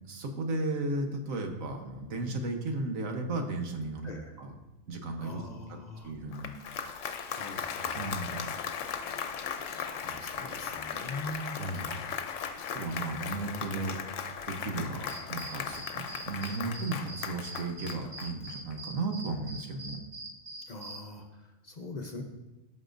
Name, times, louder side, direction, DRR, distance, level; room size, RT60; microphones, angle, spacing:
voice 1, 0.1-4.1 4.4-4.5 4.9-5.4 6.0-6.5 7.9-8.5 11.5-12.0 12.7-13.9 14.5-20.0, right 2 dB, 90° right, 4 dB, 1.4 m, -35 dB
voice 2, 4.0-4.4 5.2-6.1 7.1-8.5 9.7-11.6 13.1-13.2 20.7-22.2, left 2 dB, 40° left, 2 dB, 0.7 m, -43 dB
Applause, 6.2-18.7, left 7 dB, 75° left, 1.0 m, -37 dB
sound 1, 15.1-21.0, right 1 dB, 65° right, 2.0 m, -43 dB
14.0 x 6.2 x 2.6 m, 1.1 s
omnidirectional pair, 1.4 m